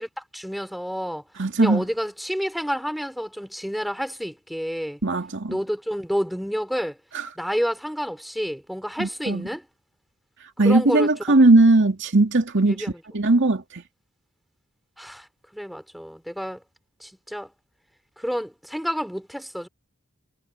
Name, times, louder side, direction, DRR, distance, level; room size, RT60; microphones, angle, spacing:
voice 1, 0.0-1.2 1.6-5.0 5.5-7.0 7.4-9.7 10.6-11.4 12.7-12.9 15.0-15.3 15.5-16.6 17.0-17.5 18.2-19.7, equal, ahead, 4.6 m, -29 dB
voice 2, 1.4-1.8 5.0-5.6 7.1-7.2 9.0-9.4 10.6-12.8 13.1-13.8, right 2 dB, 60° right, 2.5 m, -19 dB
head